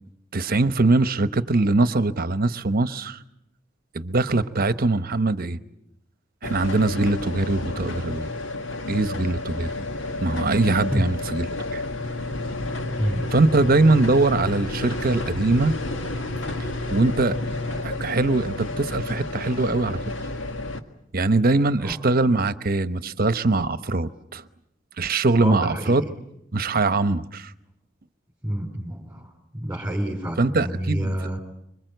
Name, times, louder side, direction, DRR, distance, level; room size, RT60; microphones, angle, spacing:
voice 1, 0.3-3.2 3.9-5.6 6.4-8.3 8.9-9.7 10.2-11.8 13.3-15.7 16.9-17.3 17.8-20.0 21.1-24.4 25.0-26.0 26.5-27.5 30.4-31.1, right 2 dB, 50° right, 12 dB, 1.0 m, -22 dB
sound 1, 6.4-20.8, left 2 dB, 70° left, 1.9 m, -30 dB
voice 2, 13.0-13.4 21.8-22.0 25.4-26.1 28.4-31.4, equal, 10° right, -1 dB, 3.7 m, -28 dB
26.0 x 24.0 x 8.0 m, 0.81 s
head